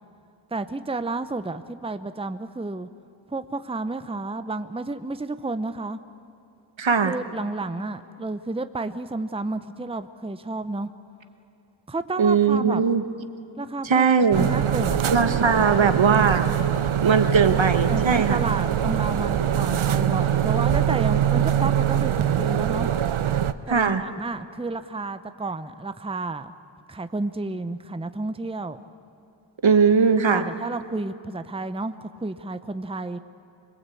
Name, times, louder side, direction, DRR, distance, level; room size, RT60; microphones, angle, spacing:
voice 1, 0.5-2.9 3.3-6.0 7.0-10.9 11.9-12.8 13.6-14.1 14.4-15.0 15.7-15.9 17.9-22.9 23.7-26.5 26.9-28.8 30.3-33.2, right 3 dB, 10° right, 11 dB, 0.7 m, -31 dB
voice 2, 6.8-7.2 12.2-13.0 13.8-14.5 15.1-16.6 17.0-18.4 23.7-24.0 29.6-30.4, right 5 dB, 70° right, 9 dB, 1.4 m, -19 dB
sound 1, 14.3-23.5, right 9 dB, 90° right, 0.8 m, -23 dB
25.5 x 20.5 x 8.4 m, 2.8 s
wide cardioid pair, 65°, 47 cm